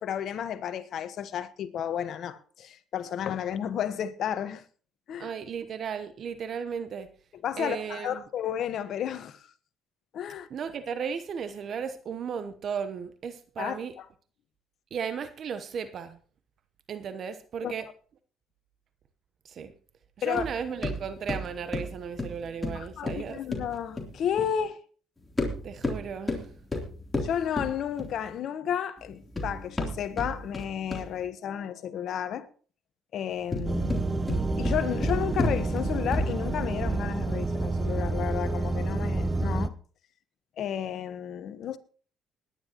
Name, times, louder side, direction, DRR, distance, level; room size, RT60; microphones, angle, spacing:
voice 1, 0.0-4.6 5.1-5.3 7.4-9.5 10.1-10.5 13.6-14.0 17.6-17.7 20.2-20.5 22.7-24.8 27.2-32.5 33.1-34.0 34.6-39.7 40.6-41.8, left 9 dB, 60° left, 1.2 m, -32 dB
voice 2, 5.2-7.1 7.6-8.2 10.5-13.9 14.9-16.2 16.9-17.9 19.4-19.7 20.2-23.4 25.6-26.4, right 7 dB, 55° right, 0.9 m, -35 dB
sound 1, 20.4-24.6 25.2-28.3 29.0-31.3 33.3-36.5, left 1 dB, 20° left, 3.3 m, -32 dB
sound 2, 33.6-39.7, right 3 dB, 25° right, 0.8 m, -29 dB
20.5 x 10.5 x 3.0 m
supercardioid pair, 70°, 0 cm